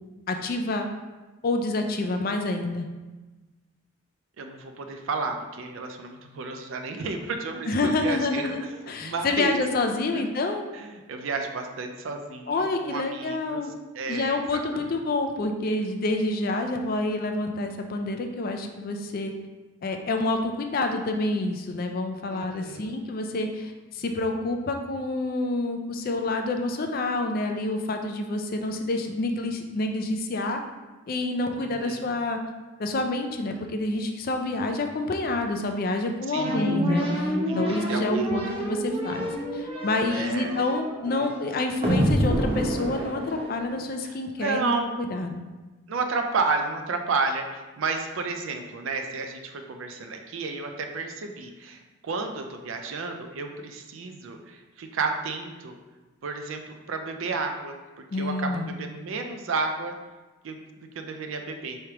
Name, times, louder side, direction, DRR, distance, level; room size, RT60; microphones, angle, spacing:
voice 1, 0.3-0.9 1.4-2.9 7.7-10.6 12.5-13.7 14.1-19.3 19.8-30.6 31.1-32.4 32.8-45.5 58.1-58.7, left 2 dB, 45° left, 5 dB, 0.4 m, -28 dB
voice 2, 4.4-9.6 10.1-10.3 10.7-13.6 13.9-14.6 22.3-23.1 31.6-32.1 36.3-36.8 37.5-38.4 40.1-40.5 41.1-41.3 44.4-45.0 45.9-47.5 47.8-55.8 56.2-60.0 60.4-60.6 61.0-61.8, right 4 dB, 70° right, 5 dB, 0.4 m, -32 dB
sound 1, 36.4-43.8, equal, 30° right, 0.6 m, -27 dB
4.6 x 3.2 x 2.9 m, 1.2 s
head